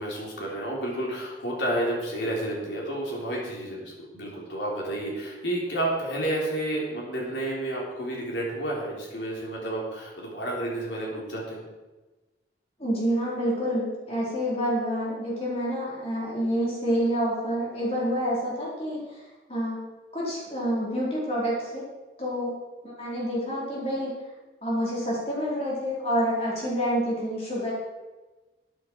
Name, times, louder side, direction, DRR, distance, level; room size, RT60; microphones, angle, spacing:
voice 1, 0.0-11.7, right 1 dB, 85° left, -3 dB, 3.7 m, -30 dB
voice 2, 12.8-19.0 19.5-21.9 22.2-22.5 23.0-24.1 24.6-27.7, equal, 35° left, -5 dB, 4.2 m, -28 dB
13.0 x 9.6 x 4.7 m, 1.2 s
head